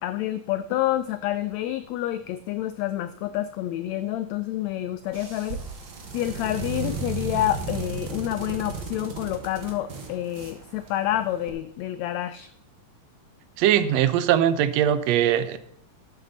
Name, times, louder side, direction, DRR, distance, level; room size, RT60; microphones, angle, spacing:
voice 1, 0.0-5.6 6.1-12.5, left 13 dB, 85° left, 13 dB, 1.5 m, -28 dB
sound 1, 5.0-11.5, right 5 dB, 45° right, 2.0 m, -35 dB
voice 2, 13.6-15.6, right 10 dB, 75° right, 13 dB, 1.6 m, -21 dB
12.5 x 8.4 x 4.0 m, 0.70 s
omnidirectional pair, 3.7 m